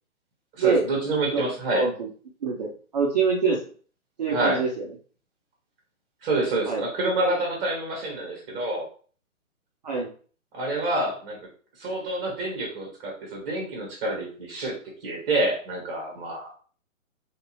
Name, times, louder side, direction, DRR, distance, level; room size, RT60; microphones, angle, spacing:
voice 1, 0.6-1.8 4.3-4.6 6.2-8.8 10.5-11.4 11.8-14.8 15.0-16.5, right 2 dB, 15° right, -1 dB, 0.9 m, -27 dB
voice 2, 1.7-2.1 2.4-3.6 4.2-4.8 6.7-6.8 9.8-10.1, right 5 dB, 30° right, -3 dB, 0.5 m, -24 dB
3.2 x 2.7 x 2.9 m, 0.42 s
hypercardioid pair, 145°, 42 cm